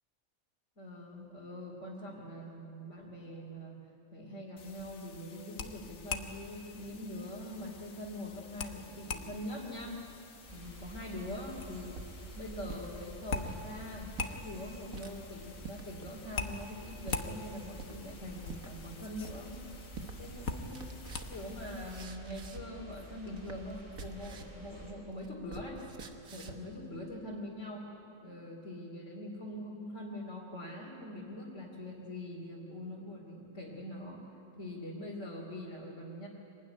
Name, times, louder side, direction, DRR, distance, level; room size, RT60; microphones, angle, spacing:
voice 1, 0.8-3.8 4.1-10.0 10.5-12.0 12.3-19.5 20.2-20.8 21.2-25.8 26.3-27.9 28.2-34.2 34.6-36.3, left 1 dB, 55° left, -4 dB, 3.5 m, -43 dB
sound 1, 4.6-22.0, left 4 dB, 80° left, 1.7 m, -44 dB
sound 2, 10.4-24.9, right 1 dB, 35° right, 4.8 m, -50 dB
sound 3, 11.9-12.9 13.3-13.6 14.1-14.4 14.9-15.1 15.6-15.8 16.4-16.5 17.1-17.3 17.8-18.1 18.5-18.7 19.2-19.6 20.0-20.2 20.5-22.8 23.1-24.6 24.9-26.7, right 4 dB, 80° right, 1.9 m, -47 dB
24.5 x 19.0 x 10.0 m, 2.9 s
omnidirectional pair, 1.5 m